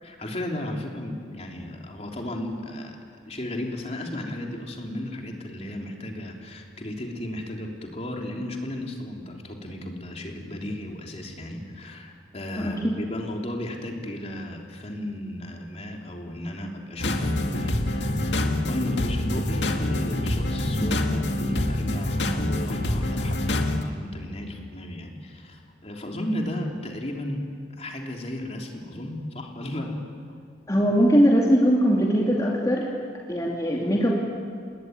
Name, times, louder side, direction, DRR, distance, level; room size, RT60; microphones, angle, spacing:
voice 1, 0.0-3.0 3.2-27.4 27.8-30.0, left 1 dB, 35° left, 1 dB, 3.4 m, -34 dB
sound 1, 17.0-23.8, left 1 dB, 90° left, 2.1 m, -26 dB
voice 2, 30.7-32.9 33.3-34.1, equal, 20° left, -2 dB, 2.7 m, -21 dB
28.5 x 20.5 x 9.5 m, 2.2 s
head